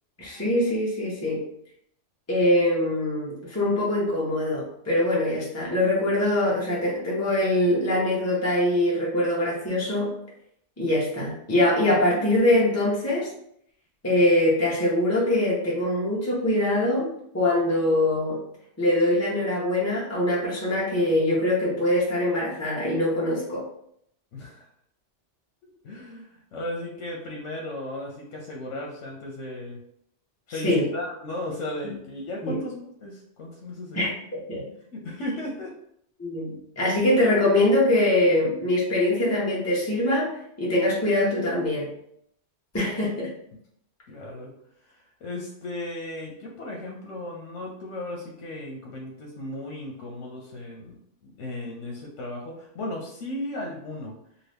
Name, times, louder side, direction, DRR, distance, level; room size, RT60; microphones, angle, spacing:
voice 1, 0.2-1.4 2.3-10.1 10.8-13.3 14.0-17.1 17.3-18.4 18.8-23.6 30.6-30.8 32.4-32.6 33.9-34.1 34.5-34.6 36.2-40.3 40.6-41.9 42.7-43.3, left 1 dB, 15° left, -5 dB, 0.8 m, -23 dB
voice 2, 24.3-24.7 25.6-29.8 30.5-34.1 34.6-35.7 44.1-44.5 44.8-51.0 51.2-54.1, left 1 dB, 85° left, -1 dB, 1.0 m, -36 dB
2.8 x 2.5 x 3.3 m, 0.71 s
omnidirectional pair, 1.2 m